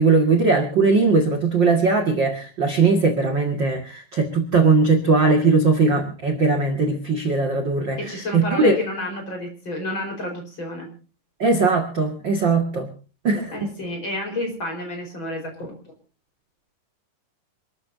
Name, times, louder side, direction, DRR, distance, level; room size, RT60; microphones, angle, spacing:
voice 1, 0.0-8.0 8.3-8.8 11.4-12.9 13.2-13.7, right 4 dB, 40° right, 4 dB, 1.9 m, -19 dB
voice 2, 8.0-10.9 13.5-15.9, left 1 dB, 30° left, 3 dB, 5.0 m, -30 dB
27.5 x 13.5 x 2.7 m, 0.37 s
omnidirectional pair, 4.5 m